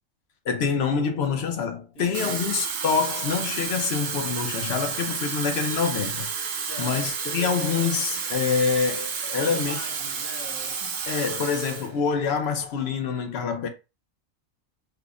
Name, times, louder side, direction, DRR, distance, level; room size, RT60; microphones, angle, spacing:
voice 1, 0.4-6.3 6.8-9.8 11.1-13.7, left 6 dB, 60° left, 0.8 m, -26 dB
voice 2, 1.9-2.5 6.7-7.1 9.3-11.0, left 4 dB, 90° left, 1.5 m, -41 dB
Water tap faucet / Fill (with liquid), 2.0-11.9 12.3-12.5, right 6 dB, 85° right, 0.4 m, -31 dB
3.4 x 2.1 x 2.4 m
omnidirectional pair, 1.4 m